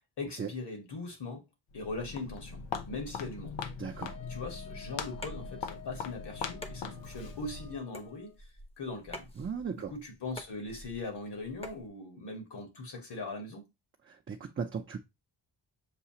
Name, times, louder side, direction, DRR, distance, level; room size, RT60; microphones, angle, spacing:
voice 1, 0.2-1.4 1.7-3.6 4.0-8.3 8.8-9.3 9.7-13.6, left 3 dB, 65° left, 1.6 m, -40 dB
Walk footsteps, 1.7-7.9, left 5 dB, 85° left, 0.7 m, -41 dB
voice 2, 3.8-4.2 9.4-9.9 14.1-15.0, right 6 dB, 30° right, 0.5 m, -37 dB
Wind instrument woodwind instrument, 3.9-8.3, left 9 dB, 50° left, 1.0 m, -51 dB
sound 1, 5.2-11.9, left 1 dB, 15° left, 0.8 m, -49 dB
6.7 x 2.4 x 2.8 m
cardioid pair, 85°, 44 cm